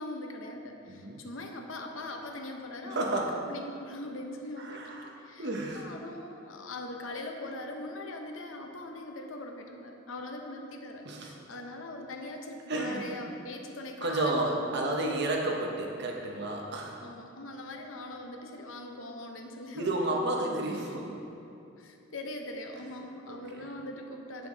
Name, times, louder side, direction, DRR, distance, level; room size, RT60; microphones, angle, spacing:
voice 1, 0.0-15.2 17.0-20.8 21.8-24.5, left 1 dB, 80° left, 3 dB, 0.8 m, -41 dB
voice 2, 0.9-1.2 2.9-3.4 4.6-5.9 11.0-11.3 12.7-13.2 14.0-17.0 19.7-21.2 23.3-23.7, right 2 dB, 60° right, 0 dB, 1.0 m, -32 dB
8.1 x 6.8 x 3.9 m, 2.7 s
head